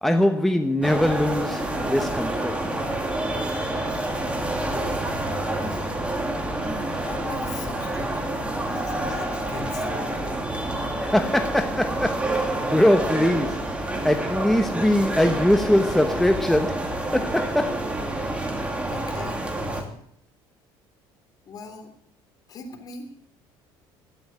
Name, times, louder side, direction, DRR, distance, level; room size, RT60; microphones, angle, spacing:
voice 1, 0.0-2.8 11.0-18.5, left 1 dB, 5° left, 1.0 m, -23 dB
sound 1, 0.8-19.8, right 1 dB, 10° right, 2.8 m, -28 dB
voice 2, 3.3-6.1 7.0-10.0 18.8-20.0 21.5-21.9 22.5-23.1, left 4 dB, 45° left, 3.6 m, -40 dB
13.0 x 10.5 x 9.6 m
cardioid pair, 130°, 9 cm